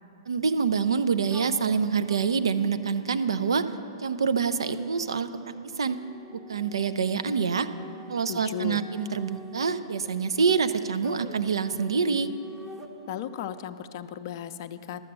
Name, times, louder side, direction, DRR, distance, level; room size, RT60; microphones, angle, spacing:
voice 1, 0.3-3.7 4.0-6.0 6.3-7.7 8.1-12.3, right 5 dB, 70° right, 11 dB, 0.5 m, -26 dB
sound 1, 1.3-13.6, right 2 dB, 10° right, 0.7 m, -47 dB
voice 2, 8.3-8.9 13.1-15.0, left 10 dB, 45° left, 9 dB, 0.5 m, -36 dB
11.5 x 7.6 x 6.7 m, 2.7 s
figure-of-eight pair, 115°, 3 cm